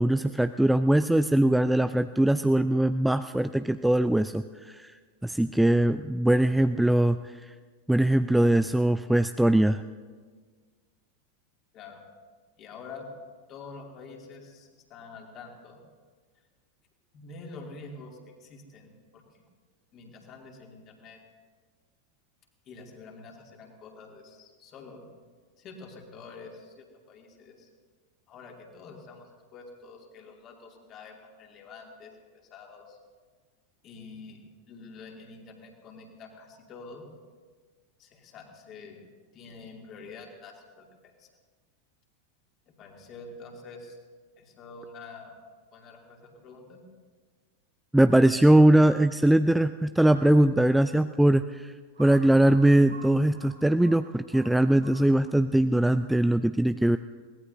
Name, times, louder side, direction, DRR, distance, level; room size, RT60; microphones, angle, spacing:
voice 1, 0.0-4.9 5.2-7.3 7.9-9.8 47.9-51.7 52.0-57.0, right 1 dB, 5° right, 11 dB, 0.3 m, -21 dB
voice 2, 12.6-13.1 13.5-15.8 17.1-19.4 19.9-21.2 22.7-25.1 25.6-27.7 28.3-33.0 33.8-34.4 34.7-37.1 38.0-39.0 39.3-41.3 42.7-44.0 44.4-45.4 45.7-46.8, left 4 dB, 35° left, 1 dB, 2.6 m, -47 dB
Crow, 50.1-50.5 51.1-51.2 51.9-55.3, right 4 dB, 80° right, 3.7 m, -48 dB
22.5 x 18.0 x 2.7 m, 1.5 s
figure-of-eight pair, 90°, 0 cm